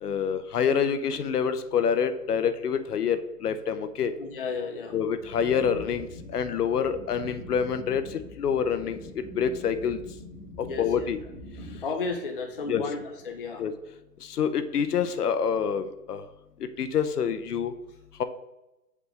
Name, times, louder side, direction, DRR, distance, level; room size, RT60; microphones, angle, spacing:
voice 1, 0.0-4.1 4.9-6.1 6.3-10.0 10.8-11.2 12.7-12.8 13.6-13.7 14.3-16.2 16.8-17.7, left 7 dB, 65° left, 10 dB, 0.7 m, -27 dB
voice 2, 4.2-5.0 10.6-11.1 11.8-13.6, left 4 dB, 35° left, 4 dB, 0.4 m, -33 dB
sound 1, 5.2-11.8, left 1 dB, 15° right, 1.0 m, -44 dB
6.8 x 5.1 x 3.3 m, 0.96 s
hypercardioid pair, 150°, 49 cm